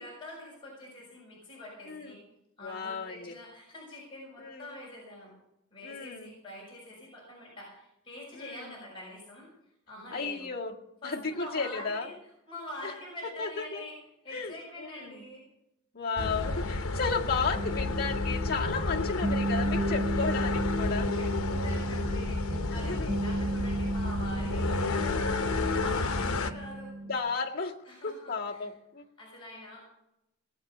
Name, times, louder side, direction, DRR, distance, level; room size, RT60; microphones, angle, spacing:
voice 1, 0.0-2.2 2.6-5.3 5.7-9.5 9.9-10.5 11.0-12.1 12.5-14.0 14.2-15.4 17.0-17.1 17.8-18.0 20.8-20.9 21.2-26.9 27.8-28.7 29.2-29.8, left 1 dB, 25° left, -5 dB, 6.2 m, -45 dB
voice 2, 1.9-2.2 2.6-3.4 4.4-4.7 5.8-6.3 8.3-8.7 10.1-10.8 11.0-12.1 12.8-12.9 13.4-13.8 14.3-15.3 15.9-21.1 22.8-23.1 24.5-25.3 27.0-27.7 28.0-29.1, left 4 dB, 45° left, -2 dB, 2.0 m, -34 dB
sound 1, 16.2-26.5, left 3 dB, 85° left, 1.0 m, -31 dB
sound 2, 17.5-27.2, right 1 dB, 50° right, 6.1 m, -34 dB
19.0 x 8.5 x 6.8 m, 0.85 s
head